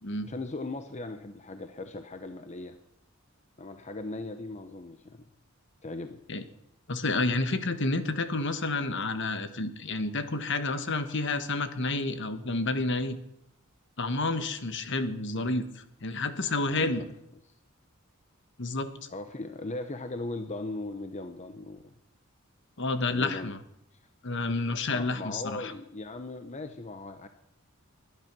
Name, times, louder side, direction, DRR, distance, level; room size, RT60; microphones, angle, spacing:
voice 1, 0.2-2.8 3.6-5.3 5.8-6.2 16.7-17.1 17.4-17.5 19.1-21.9 23.1-23.5 24.9-27.3, left 2 dB, 35° left, 8 dB, 0.8 m, -38 dB
voice 2, 6.9-13.2 14.0-17.0 18.6-18.9 22.8-23.6 24.2-25.7, left 2 dB, 60° left, 10 dB, 1.4 m, -30 dB
21.0 x 10.5 x 6.1 m, 0.79 s
head